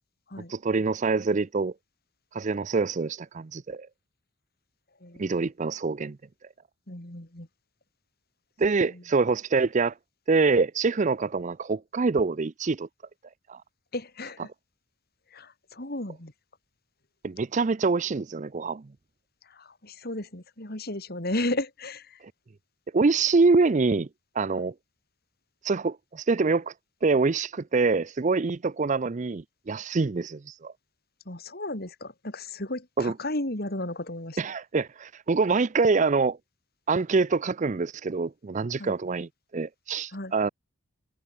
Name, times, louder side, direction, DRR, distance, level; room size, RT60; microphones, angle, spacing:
voice 1, 0.5-1.7 2.3-3.9 5.2-6.2 8.6-9.9 10.3-12.9 13.5-13.6 17.2-18.8 22.9-24.1 24.4-24.7 25.6-26.7 27.0-30.7 33.0-33.1 34.4-36.4 36.9-40.5, right 4 dB, 35° right, 0.4 m, -25 dB
voice 2, 5.0-5.4 6.9-7.5 8.8-9.0 13.9-14.5 15.3-16.3 19.5-22.2 31.3-34.4 38.8-38.9 40.1-40.3, left 1 dB, 45° left, 2.9 m, -34 dB
head